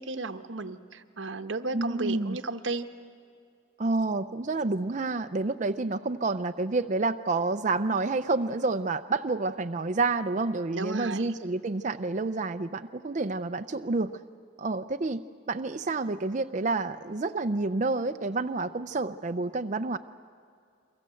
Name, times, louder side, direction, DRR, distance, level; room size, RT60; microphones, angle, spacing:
voice 1, 0.0-2.9 10.7-11.3, right 3 dB, 85° right, 8 dB, 1.2 m, -34 dB
voice 2, 1.7-2.4 3.8-14.1 14.6-15.2 15.5-20.0, right 3 dB, 40° right, 8 dB, 0.6 m, -29 dB
29.5 x 24.0 x 7.7 m, 2.3 s
head